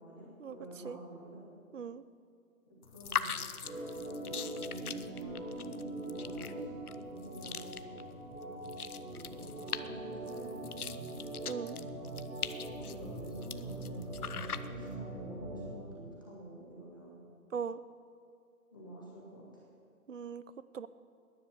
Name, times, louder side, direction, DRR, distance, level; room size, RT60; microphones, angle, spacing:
voice 1, 0.0-1.4 2.8-3.4 4.1-8.0 9.0-11.2 12.7-17.2 18.7-19.6, equal, 15° left, -6 dB, 1.4 m, -49 dB
voice 2, 1.7-2.0 11.4-11.8 17.5-17.8 20.1-20.4 20.7-20.9, right 6 dB, 55° right, 16 dB, 0.6 m, -39 dB
sound 1, 2.8-15.0, left 7 dB, 75° left, 0.8 m, -43 dB
Organ, 3.6-15.8, right 2 dB, 85° right, 3.6 m, -42 dB
13.0 x 10.5 x 8.3 m, 2.3 s
hypercardioid pair, 180°, 45 cm